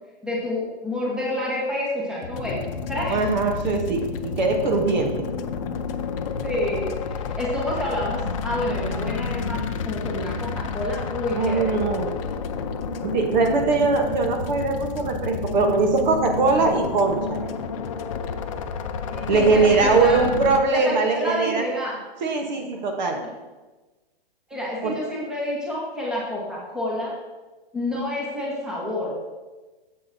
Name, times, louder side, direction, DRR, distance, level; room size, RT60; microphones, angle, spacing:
voice 1, 0.2-2.6 2.9-3.2 6.4-11.9 19.0-20.2 20.7-22.0 24.5-27.1 27.7-29.1, left 1 dB, ahead, -5 dB, 1.1 m, -28 dB
sound 1, 2.2-18.3, left 7 dB, 70° left, 0.7 m, -37 dB
sound 2, 2.3-20.6, left 5 dB, 35° left, 0.4 m, -31 dB
voice 2, 3.1-4.0 4.4-5.3 11.3-12.1 13.0-17.5 19.3-21.6 22.2-23.2 24.8-25.0, right 4 dB, 50° right, 3 dB, 1.1 m, -21 dB
9.5 x 7.7 x 2.7 m, 1.2 s
hypercardioid pair, 160°, 30 cm